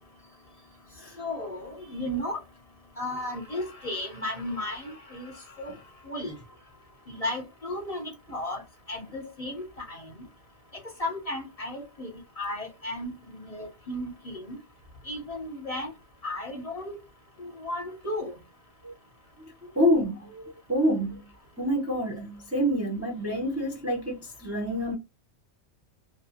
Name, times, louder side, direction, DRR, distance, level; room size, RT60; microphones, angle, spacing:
voice 1, 1.2-2.4 3.0-5.7 6.0-6.4 7.1-8.6 8.9-10.1 11.0-12.1 12.4-14.6 15.1-15.9 16.2-17.0 17.4-18.3, left 1 dB, 40° left, 0.7 m, -34 dB
voice 2, 19.8-21.2 21.6-24.9, equal, 25° right, 0.3 m, -27 dB
2.6 x 2.1 x 2.8 m
omnidirectional pair, 1.2 m